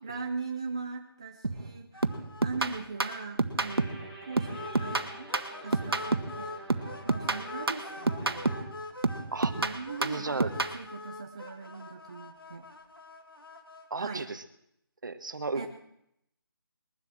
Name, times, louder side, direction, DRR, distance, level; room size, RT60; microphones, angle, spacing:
voice 1, 0.0-2.1 2.4-5.3 5.6-8.5 8.8-8.9 9.5-12.7 14.0-14.3 15.6-15.7, right 4 dB, 15° right, 3 dB, 0.5 m, -40 dB
sound 1, 1.4-1.7 2.0-4.1 4.4-6.4 6.7-8.7 9.0-10.8, right 3 dB, 85° right, 1.6 m, -30 dB
sound 2, 1.9-2.5 2.7-2.9 3.2-3.3 4.5-6.6 6.9-13.9, left 2 dB, 70° left, 2.4 m, -44 dB
sound 3, 3.6-8.6, equal, 5° left, 1.8 m, -47 dB
voice 2, 10.0-10.5 13.9-14.4 15.0-15.7, right 3 dB, 55° right, 11 dB, 1.4 m, -34 dB
21.0 x 8.0 x 7.6 m, 0.78 s
figure-of-eight pair, 175°, 13 cm